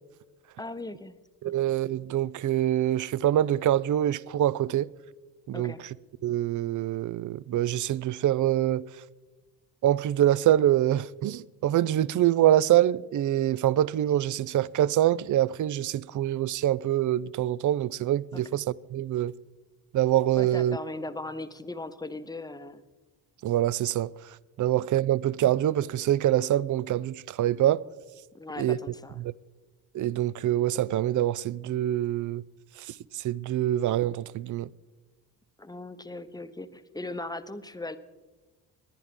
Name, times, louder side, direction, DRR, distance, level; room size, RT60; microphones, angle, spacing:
voice 1, 0.6-1.2 1.4-1.6 5.5-5.8 18.3-18.4 20.4-22.8 28.3-29.2 35.6-38.0, left 2 dB, 10° left, 0.8 m, -38 dB
voice 2, 1.4-4.9 5.5-5.7 6.2-8.8 9.8-18.6 18.9-19.3 19.9-20.8 23.4-24.1 24.6-27.8 28.6-28.8 29.2-29.3 29.9-32.4 32.8-34.7, right 12 dB, 45° right, 0.5 m, -25 dB
20.0 x 10.5 x 3.7 m
supercardioid pair, 55°, 46 cm